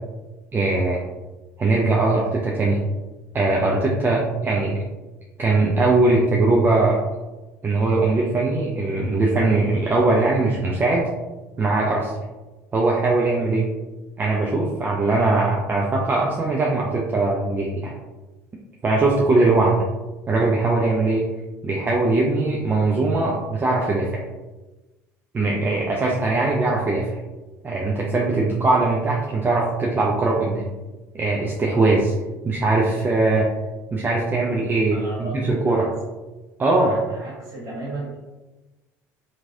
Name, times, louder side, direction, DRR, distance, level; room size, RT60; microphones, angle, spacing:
voice 1, 0.5-1.0 1.6-2.8 3.3-4.8 5.4-7.0 7.6-11.1 11.6-12.1 12.7-13.7 14.2-17.9 18.8-19.8 20.3-21.3 21.6-24.2 25.3-27.2 27.6-30.7 31.1-32.1 32.4-33.5 33.9-35.9 36.6-36.9, right 2 dB, 25° right, -3 dB, 0.5 m, -20 dB
voice 2, 34.9-35.9 36.7-38.2, right 1 dB, 45° right, -4 dB, 1.4 m, -34 dB
2.9 x 2.7 x 2.7 m, 1.1 s
figure-of-eight pair, 65°, 9 cm